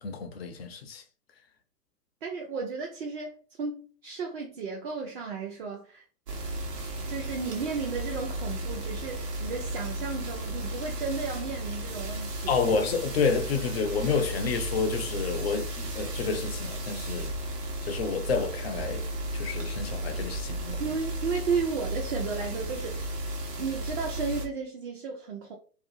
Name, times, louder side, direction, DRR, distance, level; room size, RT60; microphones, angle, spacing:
voice 1, 0.0-1.0 12.5-17.3 17.8-19.0 19.3-20.8, left 5 dB, 40° left, 0.4 m, -29 dB
voice 2, 2.2-6.0 7.1-12.6 20.8-23.0 23.6-25.5, right 5 dB, 40° right, 0.5 m, -33 dB
sound 1, 6.3-24.5, right 1 dB, 75° right, 1.0 m, -34 dB
2.5 x 2.3 x 2.7 m
figure-of-eight pair, 120°, 49 cm